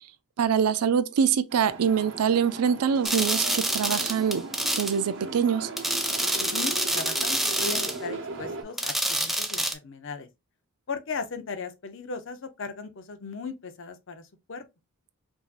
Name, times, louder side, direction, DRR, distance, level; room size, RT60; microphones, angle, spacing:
voice 1, 0.4-4.5 4.8-5.7, right 7 dB, 85° right, 0.4 m, -24 dB
sound 1, 1.5-8.6, right 3 dB, 55° right, 0.9 m, -39 dB
sound 2, 3.0-5.0 5.8-8.0 8.8-9.7, right 1 dB, ahead, 0.3 m, -27 dB
voice 2, 6.4-10.3 10.9-14.6, left 4 dB, 55° left, 0.6 m, -37 dB
4.7 x 2.7 x 2.4 m
head